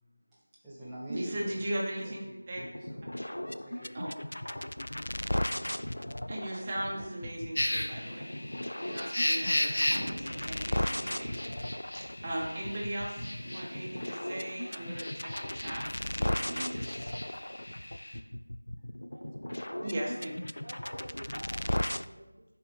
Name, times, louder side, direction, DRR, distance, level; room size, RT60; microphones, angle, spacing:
voice 1, 0.0-1.6 2.0-3.9 6.7-6.8, right 1 dB, ahead, -14 dB, 0.7 m, -47 dB
voice 2, 1.1-2.6 3.9-4.1 6.3-8.3 8.8-11.5 11.9-17.1 19.8-20.3, right 1 dB, 20° right, -4 dB, 1.2 m, -38 dB
sound 1, 2.5-22.0, left 1 dB, 80° left, 0.3 m, -37 dB
sound 2, 4.7-4.8 5.0-5.1 5.7-6.1 6.6-8.6 9.1-9.2 9.6-11.6 11.9-12.0 12.3-12.4 12.7-12.8 13.1-13.3, equal, 15° left, 1.8 m, -46 dB
sound 3, 7.6-18.2, left 1 dB, 60° left, 0.9 m, -36 dB
voice 3, 19.1-20.2 20.6-22.4, right 1 dB, 45° right, 1 dB, 1.3 m, -50 dB
10.5 x 4.4 x 3.6 m, 1.0 s
figure-of-eight pair, 175°, 0 cm